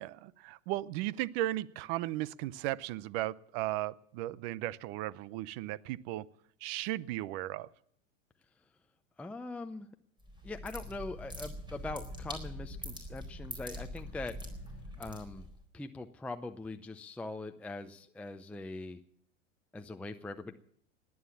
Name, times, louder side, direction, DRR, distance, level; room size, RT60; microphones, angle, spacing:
voice 1, 0.0-6.3 6.6-7.7, right 15 dB, 55° right, 20 dB, 0.8 m, -36 dB
voice 2, 9.2-9.9 10.4-14.4 15.0-15.4 15.7-19.0 19.7-20.5, left 2 dB, 5° left, 6 dB, 0.6 m, -42 dB
sound 1, 10.2-15.6, equal, 10° right, 4.2 m, -43 dB
18.5 x 9.6 x 7.2 m, 0.67 s
hypercardioid pair, 110°, 38 cm